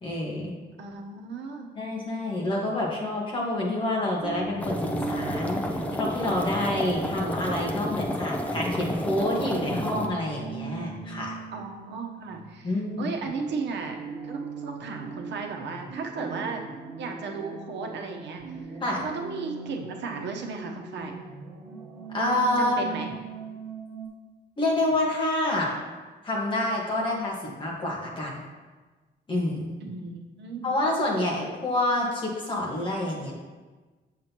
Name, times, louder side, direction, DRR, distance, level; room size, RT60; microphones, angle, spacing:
voice 1, 0.0-0.5 1.7-11.3 12.6-13.1 18.8-19.0 22.1-22.8 24.6-25.7 26.2-28.4 29.3-29.7 30.6-33.3, left 1 dB, 25° left, -3 dB, 1.6 m, -28 dB
voice 2, 0.8-1.7 11.5-12.7 13.0-14.0 14.2-16.6 17.0-18.8 19.0-21.1 22.6-23.2 29.8-30.7, right 4 dB, 80° right, 2 dB, 1.0 m, -35 dB
sound 1, 4.2-24.1, right 5 dB, 55° right, 1.3 m, -40 dB
sound 2, 4.6-10.1, equal, 10° left, 0.5 m, -31 dB
7.6 x 7.5 x 3.0 m, 1.3 s
wide cardioid pair, 170°, 18 cm